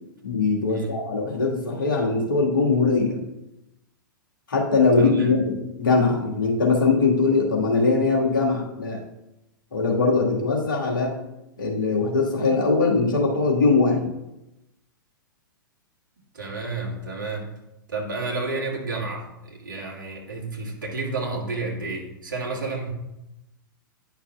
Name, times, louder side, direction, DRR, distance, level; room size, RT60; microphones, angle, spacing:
voice 1, 0.2-3.2 4.5-9.0 9.7-11.1 11.6-14.1, left 4 dB, 65° left, -2 dB, 1.7 m, -21 dB
voice 2, 5.0-5.3 16.3-17.5 17.9-22.9, right 3 dB, 65° right, -2 dB, 1.9 m, -31 dB
10.0 x 5.9 x 2.3 m, 0.90 s
figure-of-eight pair, 100°, 11 cm